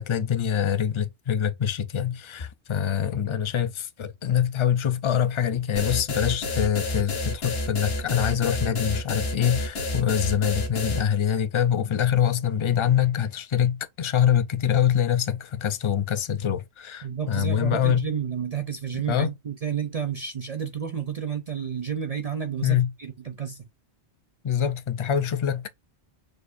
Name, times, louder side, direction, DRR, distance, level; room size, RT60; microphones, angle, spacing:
voice 1, 0.0-18.1 19.1-19.3 22.6-22.9 24.4-25.7, left 9 dB, 50° left, 0.3 m, -24 dB
sound 1, 5.8-11.0, left 2 dB, 65° left, 1.3 m, -29 dB
voice 2, 17.0-23.6, right 7 dB, 45° right, 0.5 m, -31 dB
6.4 x 2.6 x 2.5 m
omnidirectional pair, 1.1 m